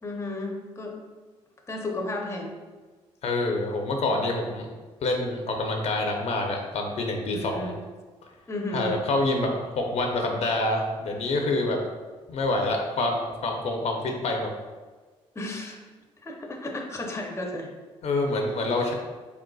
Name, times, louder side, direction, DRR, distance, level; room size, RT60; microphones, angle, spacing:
voice 1, 0.0-1.0 1.7-2.5 7.3-7.8 8.5-9.0 15.3-15.8 16.2-17.7, left 2 dB, 20° left, 1 dB, 0.7 m, -33 dB
voice 2, 3.2-4.7 5.0-7.7 8.7-11.8 12.3-14.5 18.0-18.9, left 2 dB, 60° left, 2 dB, 0.6 m, -26 dB
4.4 x 3.8 x 2.3 m, 1.4 s
cardioid pair, 85°, 13 cm